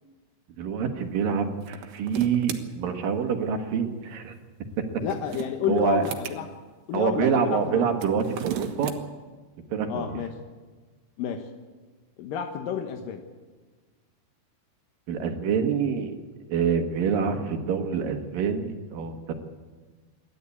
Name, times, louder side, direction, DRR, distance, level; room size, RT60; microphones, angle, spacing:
voice 1, 0.6-4.3 5.7-6.0 6.9-8.9 9.7-10.2 15.1-16.1 16.5-19.3, right 6 dB, 60° right, 5 dB, 3.0 m, -26 dB
sound 1, 1.6-2.6 4.9-6.4 7.9-9.0, right 10 dB, 85° right, 3.6 m, -35 dB
voice 2, 5.0-6.5 6.9-7.9 9.9-10.3 11.2-11.5 12.2-13.2, left 9 dB, 65° left, 4 dB, 2.3 m, -30 dB
27.5 x 12.0 x 8.6 m, 1.3 s
omnidirectional pair, 5.0 m